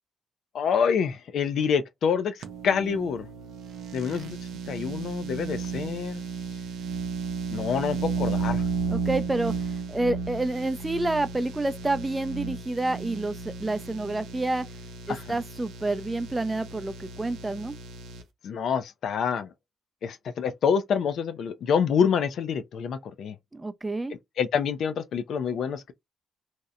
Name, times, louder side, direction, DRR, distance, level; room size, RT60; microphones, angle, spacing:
voice 1, 0.5-3.3 3.9-4.4 4.7-6.2 7.5-8.6 15.1-15.4 18.4-19.5 20.0-23.4 24.4-25.9, left 7 dB, 75° left, 0.3 m, -27 dB
sound 1, 2.4-18.2, right 5 dB, 85° right, 0.4 m, -34 dB
voice 2, 8.9-9.5 9.9-14.6 15.1-17.7 23.5-24.1, right 2 dB, 20° right, 0.4 m, -28 dB
2.7 x 2.0 x 2.4 m
cardioid pair, 70°, 0 cm